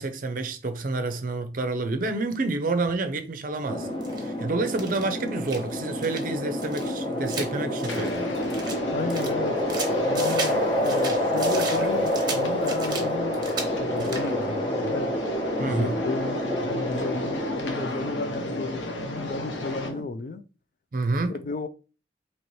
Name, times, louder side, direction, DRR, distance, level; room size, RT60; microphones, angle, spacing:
voice 1, 0.0-3.9 4.2-8.3 15.6-15.9 20.9-21.4, right 3 dB, 50° right, 0.5 m, -28 dB
sound 1, 3.7-20.0, equal, 30° left, 1.0 m, -28 dB
sound 2, 4.0-4.3 4.7-5.7 6.0-6.3 6.6-8.8 9.1-10.6 10.8-13.1 13.3-13.7 14.0-14.3, right 4 dB, 25° right, 0.9 m, -36 dB
sound 3, 7.9-19.9, left 1 dB, 90° left, 1.0 m, -34 dB
voice 2, 8.9-9.6 10.1-15.1 15.6-20.4 21.3-21.7, left 3 dB, 45° left, 0.4 m, -33 dB
4.3 x 2.9 x 3.1 m
head